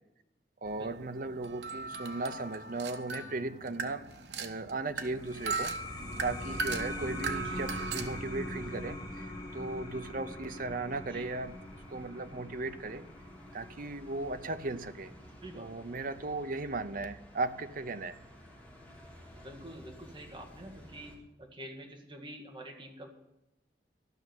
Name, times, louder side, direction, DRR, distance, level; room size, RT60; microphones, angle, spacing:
voice 1, 0.6-4.0 4.4-11.5 11.9-13.0 13.5-15.1 15.6-18.1, right 3 dB, 50° right, 10 dB, 0.8 m, -37 dB
sound 1, 0.7-8.2, right 4 dB, 75° right, 1.2 m, -39 dB
sound 2, 5.0-16.2, left 1 dB, 25° left, 2.5 m, -43 dB
sound 3, 5.9-21.2, equal, 10° left, 3.3 m, -52 dB
voice 2, 15.4-15.8 19.4-23.1, right 1 dB, 30° right, 0 dB, 1.9 m, -47 dB
13.5 x 6.3 x 9.2 m, 0.96 s
head